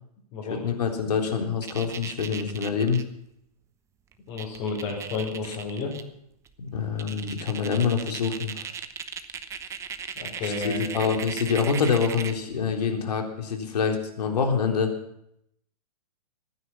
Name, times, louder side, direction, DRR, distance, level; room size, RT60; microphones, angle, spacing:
voice 1, 0.5-3.0 5.4-5.6 6.6-8.6 10.4-14.9, left 6 dB, 80° left, 3 dB, 3.7 m, -26 dB
sound 1, 1.6-3.0 4.1-4.2 4.4-6.0 6.5-6.6 7.0-12.4, right 7 dB, 15° right, 0.9 m, -37 dB
voice 2, 4.3-5.9 10.2-11.0, left 4 dB, 35° left, -6 dB, 5.6 m, -31 dB
23.5 x 9.8 x 5.9 m, 0.74 s
hypercardioid pair, 145°, 20 cm